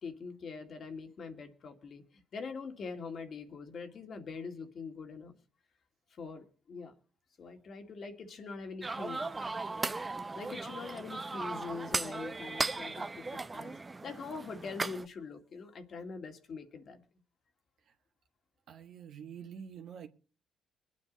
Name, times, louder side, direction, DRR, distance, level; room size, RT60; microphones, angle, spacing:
voice 1, 0.0-5.3 6.1-7.0 7.4-9.2 10.3-17.0, left 4 dB, 55° left, 2.2 m, -43 dB
sound 1, 8.8-15.1, right 3 dB, 25° right, 0.7 m, -37 dB
voice 2, 18.7-20.1, right 8 dB, 75° right, 1.5 m, -46 dB
23.0 x 9.5 x 4.1 m
cardioid pair, 90°, 0 cm